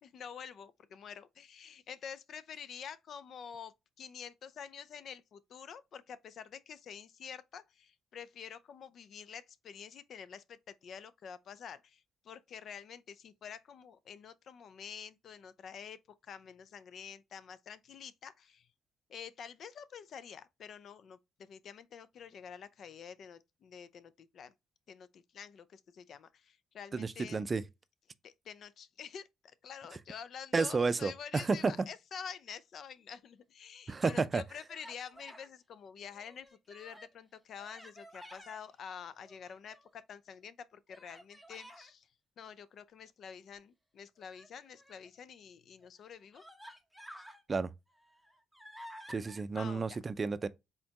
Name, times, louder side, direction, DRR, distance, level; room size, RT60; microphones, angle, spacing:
voice 1, 0.0-16.0 16.3-18.7 19.1-24.5 24.9-27.5 28.2-29.3 29.6-42.1 42.4-46.4 49.5-50.0, left 7 dB, 60° left, 0.4 m, -48 dB
voice 2, 26.9-27.6 30.5-31.7 33.9-34.4 47.5-47.7 49.1-50.5, right 4 dB, 30° right, 0.4 m, -31 dB
Human voice, 33.7-34.3 34.7-35.5 36.0-37.2 37.6-38.6 39.2-40.0 40.9-41.9 44.2-45.1 45.8-45.9 46.3-47.4 47.9-49.4, equal, 5° left, 0.9 m, -53 dB
4.2 x 3.9 x 2.8 m
cardioid pair, 90°, 0 cm